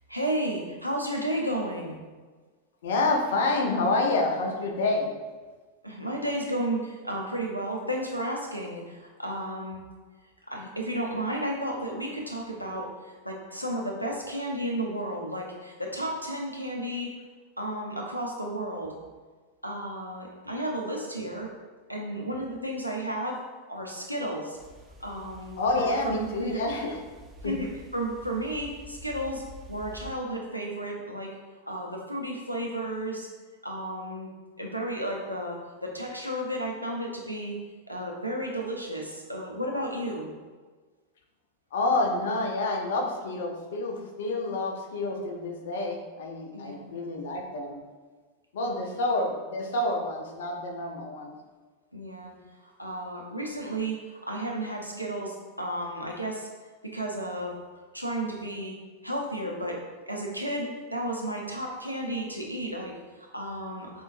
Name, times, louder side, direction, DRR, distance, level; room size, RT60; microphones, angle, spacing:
voice 1, 0.1-2.0 5.8-9.8 10.5-17.1 17.6-18.9 19.6-21.5 21.9-23.4 23.7-24.6 25.0-26.6 27.4-31.3 31.7-33.3 33.6-34.3 34.6-37.5 37.9-40.3 46.5-46.9 48.6-48.8 51.9-52.3 52.6-56.5 56.9-57.5 57.9-58.7 59.0-59.8 60.1-64.0, right 1 dB, 90° right, -1 dB, 0.7 m, -33 dB
voice 2, 2.8-5.1 25.6-27.0 27.4-27.5 41.7-47.8 48.5-51.3, left 2 dB, 60° left, 2 dB, 0.6 m, -28 dB
sound 1, 24.5-30.1, right 1 dB, 20° right, 0.5 m, -48 dB
4.4 x 3.8 x 2.5 m, 1.4 s
figure-of-eight pair, 90°, 0 cm